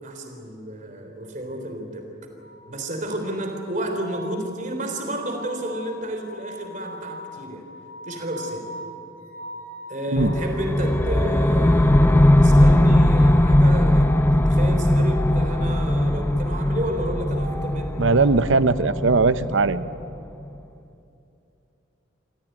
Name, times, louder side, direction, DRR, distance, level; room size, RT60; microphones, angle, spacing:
voice 1, 0.0-2.1 2.7-7.6 8.0-8.6 9.9-17.9, right 1 dB, 40° right, 4 dB, 3.5 m, -31 dB
sound 1, 2.4-10.5 11.7-13.0 13.8-15.7 16.9-18.3, left 1 dB, 65° left, 4.1 m, -41 dB
sound 2, 10.2-20.2, left 1 dB, 10° left, 0.6 m, -19 dB
voice 2, 18.0-19.9, right 3 dB, 75° right, 14 dB, 0.8 m, -19 dB
26.0 x 16.5 x 9.1 m, 2.7 s
head